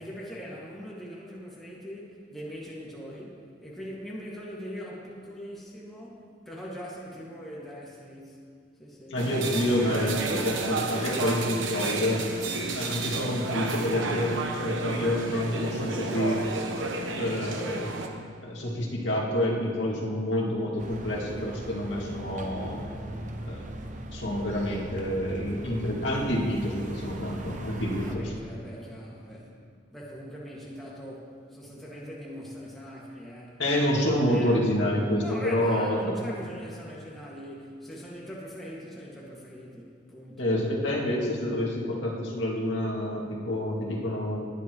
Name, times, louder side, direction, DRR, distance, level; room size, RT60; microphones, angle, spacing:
voice 1, 0.0-8.4 8.8-9.2 28.0-29.5 29.9-34.0 34.3-34.6 35.2-40.5, equal, ahead, -7 dB, 2.0 m, -41 dB
voice 2, 9.1-12.2 12.7-16.4 17.2-17.9 18.4-22.8 23.4-23.6 24.1-28.3 33.6-36.3 40.4-44.5, left 1 dB, 70° left, -3 dB, 2.2 m, -28 dB
sound 1, 9.2-18.1, right 3 dB, 80° right, 1.1 m, -31 dB
sound 2, 20.8-28.2, right 1 dB, 40° right, 0.8 m, -40 dB
19.0 x 10.5 x 3.1 m, 2.2 s
head